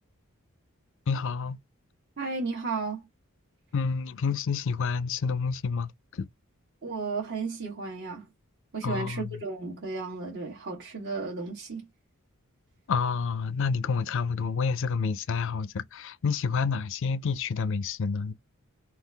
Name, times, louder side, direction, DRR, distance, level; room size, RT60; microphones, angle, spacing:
voice 1, 1.1-1.6 3.7-6.3 8.8-9.4 12.9-18.3, left 5 dB, 60° left, 0.4 m, -29 dB
voice 2, 2.2-3.0 6.8-8.3 8.7-11.8, right 4 dB, 55° right, 1.1 m, -33 dB
3.8 x 2.4 x 3.3 m
head